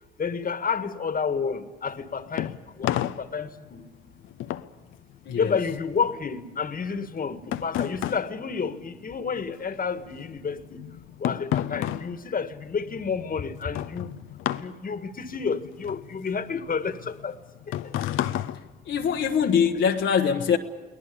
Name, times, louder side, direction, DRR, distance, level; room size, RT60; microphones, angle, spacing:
voice 1, 0.2-3.8 5.4-10.8 11.2-14.1 14.6-17.4 17.7-17.9, left 5 dB, 45° left, 1.7 m, -30 dB
sound 1, 1.9-9.5 9.8-19.5, left 12 dB, 90° left, 0.8 m, -33 dB
voice 2, 5.2-5.6 18.8-20.6, left 7 dB, 70° left, 1.2 m, -23 dB
23.5 x 18.0 x 8.5 m
supercardioid pair, 65°, 20 cm